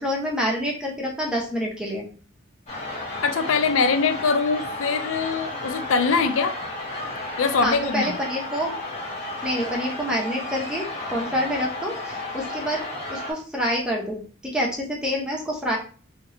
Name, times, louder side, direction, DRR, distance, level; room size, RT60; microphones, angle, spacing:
voice 1, 0.0-2.1 7.6-8.7 9.4-12.8 13.1-15.8, equal, 5° right, -2 dB, 0.7 m, -27 dB
sound 1, 2.7-13.3, left 2 dB, 35° left, 1.1 m, -33 dB
voice 2, 3.2-6.5 7.4-8.1, left 4 dB, 80° left, 8 dB, 0.4 m, -23 dB
3.0 x 2.8 x 2.9 m, 0.40 s
head